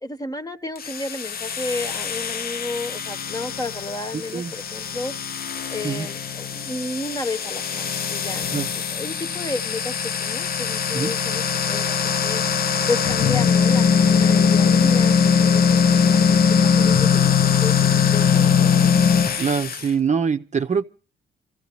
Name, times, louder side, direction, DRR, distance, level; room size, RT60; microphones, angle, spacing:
voice 1, 0.0-5.1 5.7-16.3 16.6-17.7 18.1-19.1, left 2 dB, 20° left, 1.2 m, -32 dB
sound 1, 0.8-19.9, left 7 dB, 50° left, 0.8 m, -21 dB
voice 2, 4.1-4.5 5.8-6.1 8.5-8.7 10.9-11.1 19.4-20.8, right 6 dB, 35° right, 0.7 m, -24 dB
27.5 x 15.0 x 3.1 m
cardioid pair, 90°, 20 cm